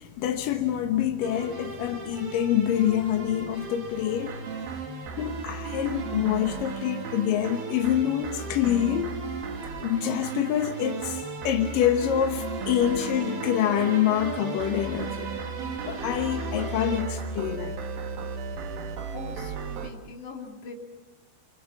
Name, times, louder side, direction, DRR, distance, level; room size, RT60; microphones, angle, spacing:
voice 1, 0.0-4.4 5.2-9.2 9.8-15.3 15.9-17.8, left 10 dB, 75° left, 2.0 m, -26 dB
sound 1, 1.2-17.0, right 3 dB, 40° right, 4.1 m, -39 dB
sound 2, 4.1-19.9, right 5 dB, 60° right, 3.0 m, -36 dB
voice 2, 19.1-19.5 19.8-20.7, left 4 dB, 45° left, 3.5 m, -41 dB
29.0 x 24.0 x 7.1 m
omnidirectional pair, 5.6 m